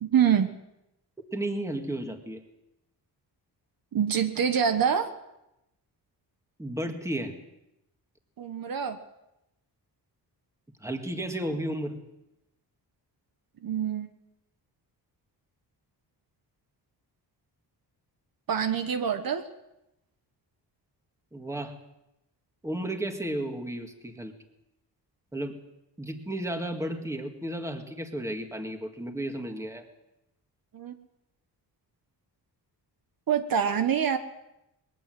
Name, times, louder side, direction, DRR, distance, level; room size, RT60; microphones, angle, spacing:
voice 1, 0.0-0.5 3.9-5.1 8.4-9.0 13.6-14.1 18.5-19.5 30.7-31.0 33.3-34.2, right 8 dB, 55° right, 8 dB, 1.4 m, -25 dB
voice 2, 1.2-2.4 6.6-7.4 10.8-12.0 21.3-21.8 22.6-24.3 25.3-25.6 26.0-29.9, right 1 dB, 5° right, 4 dB, 1.9 m, -33 dB
21.5 x 17.0 x 7.8 m, 0.87 s
wide cardioid pair, 175°, 41 cm